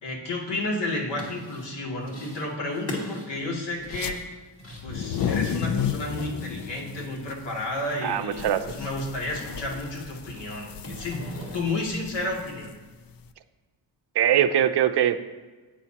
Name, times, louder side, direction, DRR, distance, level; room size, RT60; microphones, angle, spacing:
voice 1, 0.0-4.2 4.8-12.7, left 2 dB, 70° left, -2 dB, 2.6 m, -32 dB
sound 1, 0.9-1.7 2.0-2.5 2.7-7.0 7.3-8.3 8.6-9.7 10.1-11.8, left 1 dB, 30° left, 2.2 m, -40 dB
sound 2, 3.9-4.1 4.7-13.2, left 8 dB, 55° left, 0.5 m, -33 dB
voice 2, 8.0-8.7 14.1-15.2, right 10 dB, 65° right, 10 dB, 0.6 m, -22 dB
16.5 x 9.1 x 2.9 m, 1.3 s
wide cardioid pair, 175°, 44 cm